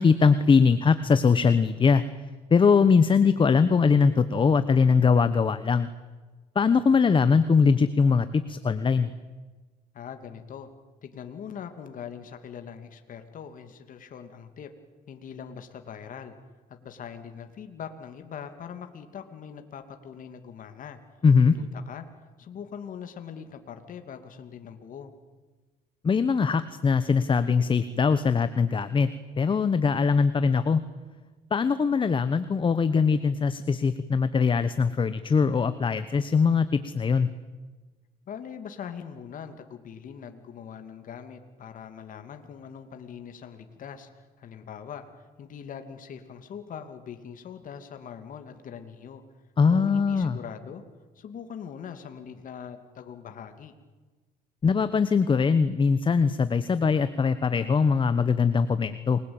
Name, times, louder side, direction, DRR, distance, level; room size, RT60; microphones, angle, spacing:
voice 1, 0.0-2.0 2.5-5.9 6.5-9.1 21.2-21.6 26.0-29.1 29.4-30.8 31.5-37.3 49.6-50.4 54.6-59.2, left 5 dB, 30° left, 12 dB, 1.2 m, -21 dB
voice 2, 9.9-10.7 11.0-14.7 15.1-16.3 16.7-21.0 21.4-22.0 22.4-25.1 38.3-45.1 45.4-49.2 49.7-50.8 51.2-53.7, left 7 dB, 50° left, 7 dB, 2.6 m, -42 dB
29.0 x 21.0 x 8.9 m, 1.3 s
cardioid pair, 110°, 17 cm